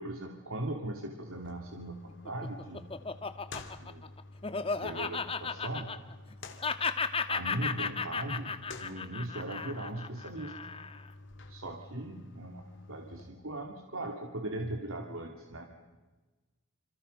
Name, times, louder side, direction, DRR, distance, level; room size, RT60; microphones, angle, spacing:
voice 1, 0.0-2.9 3.8-4.1 4.8-5.9 7.3-8.5 8.8-10.5 11.5-15.6, right 1 dB, 75° right, 3 dB, 2.6 m, -39 dB
sound 1, 1.3-13.3, left 2 dB, 55° left, 2.9 m, -50 dB
Laughter, 2.1-6.3 6.6-11.1, left 5 dB, 25° left, 1.2 m, -34 dB
28.0 x 27.5 x 5.5 m, 1.3 s
head